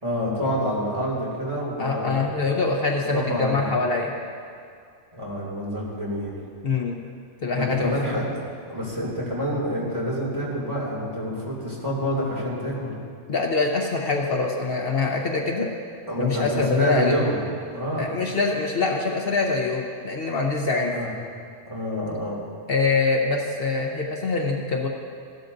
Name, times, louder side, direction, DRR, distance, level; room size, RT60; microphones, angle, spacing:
voice 1, 0.0-2.3 3.1-3.7 5.1-6.4 7.5-8.4 8.7-12.9 16.1-17.4 17.7-18.1 20.9-21.1 21.7-22.4, equal, 25° right, -6 dB, 2.6 m, -27 dB
voice 2, 1.8-4.1 6.6-7.0 7.4-7.9 13.3-15.7 16.2-17.1 18.0-20.9 22.7-24.9, left 4 dB, 55° left, 0 dB, 1.0 m, -24 dB
16.0 x 11.5 x 2.6 m, 2.3 s
omnidirectional pair, 1.2 m